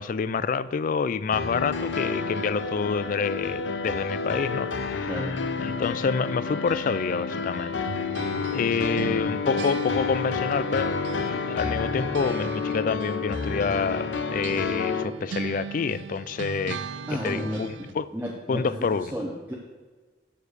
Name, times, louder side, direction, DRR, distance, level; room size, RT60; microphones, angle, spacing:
voice 1, 0.0-5.1 5.6-7.8 8.5-10.9 11.2-16.8 17.1-18.1 18.5-19.1, left 5 dB, 45° left, 16 dB, 0.3 m, -28 dB
sound 1, 1.3-15.0, left 4 dB, 80° left, 0.7 m, -29 dB
sound 2, 7.8-11.3 11.6-18.0, right 5 dB, 80° right, 0.5 m, -39 dB
voice 2, 17.1-17.9 18.1-19.5, equal, 10° right, -2 dB, 0.8 m, -33 dB
7.3 x 6.7 x 6.4 m, 1.4 s
head